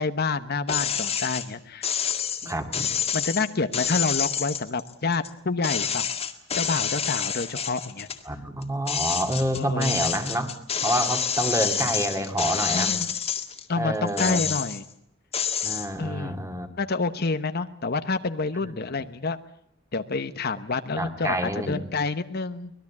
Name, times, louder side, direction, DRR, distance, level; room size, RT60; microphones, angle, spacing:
voice 1, 0.0-1.9 2.4-2.5 3.1-6.1 6.6-8.1 9.5-10.0 12.7-13.1 13.7-14.9 16.0-16.4 16.8-19.4 19.9-22.7, left 4 dB, 50° left, 10 dB, 1.0 m, -28 dB
sound 1, 0.7-1.4 1.8-5.3 5.6-8.2 8.6-13.6 14.1-14.9 15.3-15.9, left 7 dB, 30° left, 2.0 m, -28 dB
voice 2, 2.4-2.8 8.3-10.5 10.8-13.0 13.8-14.4 15.6-16.7 18.6-18.7 21.0-21.8, right 1 dB, 15° right, 6 dB, 2.3 m, -28 dB
24.5 x 20.0 x 8.6 m, 0.69 s
head